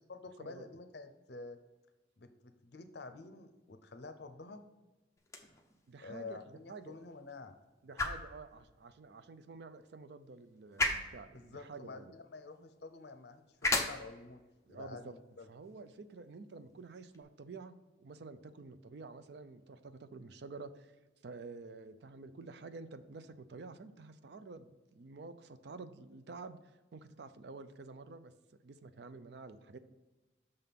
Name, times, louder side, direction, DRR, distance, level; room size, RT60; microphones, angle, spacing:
voice 1, 0.1-1.6 2.2-4.6 6.0-7.5 11.3-14.4 14.7-15.5, left 3 dB, 60° left, 8 dB, 0.6 m, -49 dB
sound 1, 5.2-17.2, left 2 dB, 15° left, 0.6 m, -41 dB
voice 2, 5.9-7.0 7.8-12.1 14.7-15.2 15.5-21.0 21.2-28.3 28.6-29.8, right 3 dB, 60° right, 11 dB, 0.4 m, -50 dB
6.6 x 3.6 x 5.8 m, 1.1 s
head